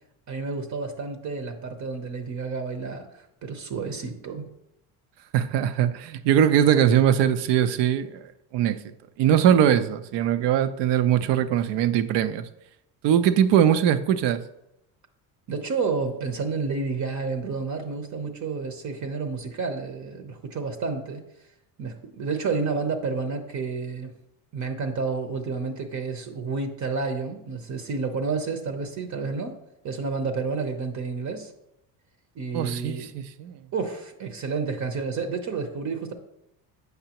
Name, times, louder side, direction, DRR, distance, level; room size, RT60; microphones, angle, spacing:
voice 1, 0.3-4.5 15.5-21.2 21.8-24.1 24.5-29.6 29.8-31.5 32.3-33.1 33.7-36.1, right 4 dB, 40° right, 6 dB, 0.8 m, -30 dB
voice 2, 5.3-8.2 8.5-8.8 9.2-12.5 13.0-14.4 32.5-33.5, right 9 dB, 70° right, 12 dB, 0.6 m, -21 dB
8.0 x 5.5 x 2.9 m, 0.82 s
cardioid pair, 105°, 44 cm